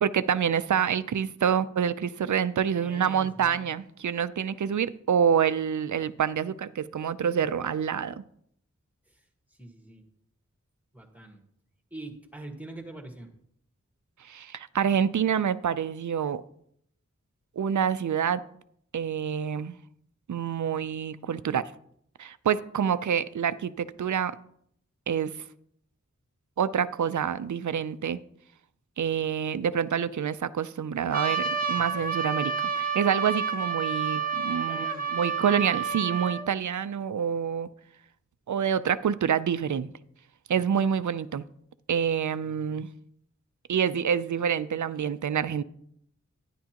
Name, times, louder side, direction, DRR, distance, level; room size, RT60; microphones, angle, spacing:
voice 1, 0.0-8.2 14.2-16.4 17.6-18.4 18.9-19.8 20.3-21.6 22.2-24.4 25.1-25.4 26.6-28.2 29.0-34.9 35.1-37.7 38.5-39.9 40.5-41.4 41.9-42.9 43.7-45.6, right 8 dB, 80° right, 0.4 m, -27 dB
voice 2, 2.7-3.7 9.1-9.2 9.6-10.1 10.9-11.4 11.9-13.3 34.6-35.3 42.4-42.8, right 2 dB, 5° right, 1.5 m, -44 dB
Trumpet, 31.1-36.4, right 6 dB, 30° right, 0.9 m, -29 dB
10.5 x 10.0 x 2.9 m
wide cardioid pair, 70°, 30 cm